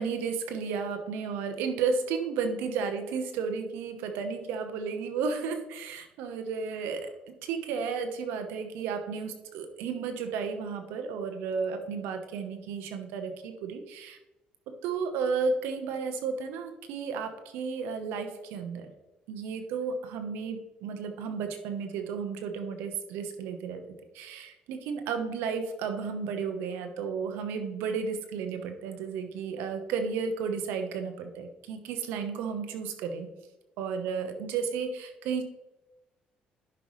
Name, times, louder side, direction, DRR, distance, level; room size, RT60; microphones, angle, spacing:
voice 1, 0.0-14.2 14.7-18.9 19.3-33.3 33.8-35.4, right 5 dB, 85° right, 7 dB, 1.0 m, -33 dB
11.0 x 5.5 x 3.2 m, 1.0 s
supercardioid pair, 80°, 3 cm